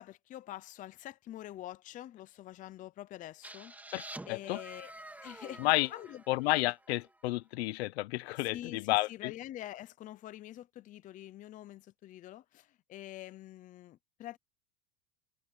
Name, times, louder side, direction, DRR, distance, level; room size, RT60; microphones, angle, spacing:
voice 1, 0.0-3.7 4.2-4.9 5.2-5.6 5.9-6.2 8.4-14.4, left 13 dB, 25° left, 0.6 m, -46 dB
sound 1, 3.4-7.2, right 2 dB, 5° right, 3.1 m, -49 dB
voice 2, 3.9-4.6 5.6-5.9 6.3-9.3, left 19 dB, 75° left, 0.9 m, -31 dB
supercardioid pair, 150°, 32 cm